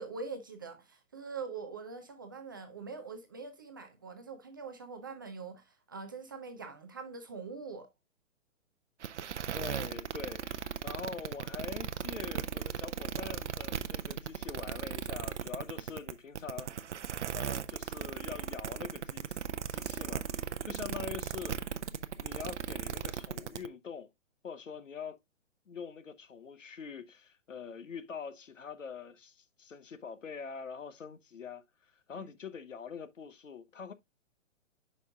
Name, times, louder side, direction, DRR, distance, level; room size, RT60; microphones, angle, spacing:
voice 1, 0.0-7.9 20.6-20.8 32.1-32.3, right 4 dB, 20° right, 0.4 m, -43 dB
sound 1, 9.0-23.7, right 8 dB, 65° right, 0.6 m, -37 dB
voice 2, 9.5-16.8 17.3-21.6 22.2-24.1 24.4-25.2 25.7-33.9, left 6 dB, 75° left, 0.9 m, -44 dB
9.3 x 5.3 x 2.3 m
figure-of-eight pair, 125°, 38 cm